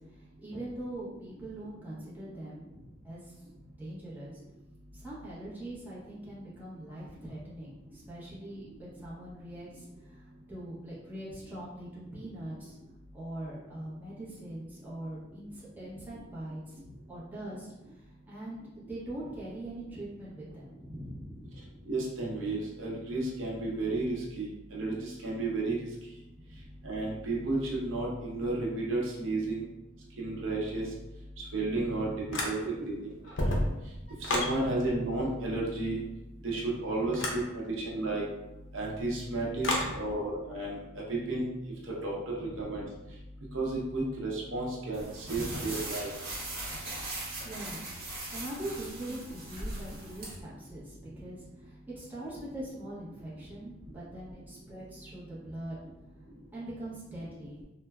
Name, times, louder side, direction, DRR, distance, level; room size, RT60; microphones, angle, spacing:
voice 1, 0.0-4.4 4.9-12.8 13.1-21.7 26.4-26.7 31.8-32.6 36.9-37.3 39.6-40.0 42.3-42.7 45.2-45.7 47.2-47.8 48.3-55.8 56.5-57.6, right 1 dB, 10° right, -9 dB, 0.7 m, -43 dB
voice 2, 21.9-24.5 24.7-25.8 26.8-29.6 30.2-30.8 31.4-32.1 32.4-32.9 33.4-33.6 34.2-36.0 36.4-38.2 38.7-40.8 41.1-41.5 42.0-42.8 43.5-46.1, right 2 dB, 80° right, -3 dB, 0.7 m, -32 dB
sound 1, 32.3-32.9 33.2-34.6 37.1-37.4 39.6-39.9, left 1 dB, 65° left, 0.5 m, -30 dB
sound 2, 44.9-50.3, right 1 dB, 45° right, 0.9 m, -39 dB
3.2 x 2.1 x 2.3 m, 0.98 s
head